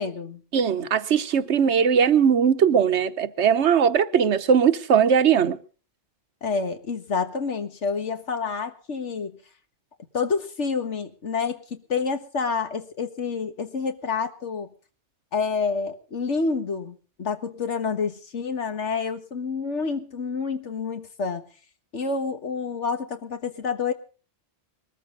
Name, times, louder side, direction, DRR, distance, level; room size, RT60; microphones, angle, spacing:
voice 1, 0.0-0.4 6.4-9.4 10.1-14.7 15.3-21.4 21.9-23.9, left 5 dB, 85° left, 1.9 m, -28 dB
voice 2, 0.5-5.6, right 7 dB, 75° right, 1.2 m, -20 dB
21.0 x 14.0 x 3.8 m
omnidirectional pair, 1.2 m